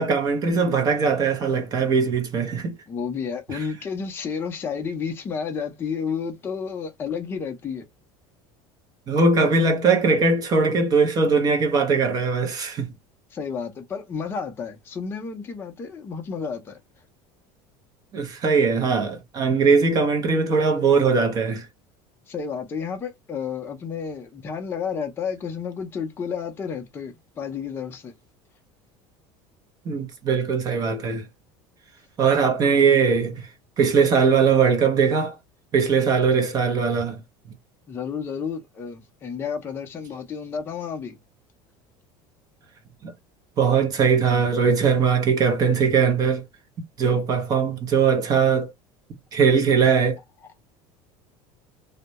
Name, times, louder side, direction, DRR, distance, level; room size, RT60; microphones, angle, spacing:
voice 1, 0.0-2.7 3.5-3.6 9.1-12.9 18.1-21.7 29.9-31.3 32.2-33.5 33.8-35.3 35.7-37.2 43.0-43.1 43.6-46.4 47.0-48.7 49.3-50.2, right 5 dB, 30° right, 0.6 m, -20 dB
voice 2, 2.9-7.8 13.3-16.8 22.3-28.1 37.9-41.2, left 6 dB, 20° left, 0.5 m, -31 dB
2.2 x 2.0 x 2.7 m
cardioid pair, 150°, 12 cm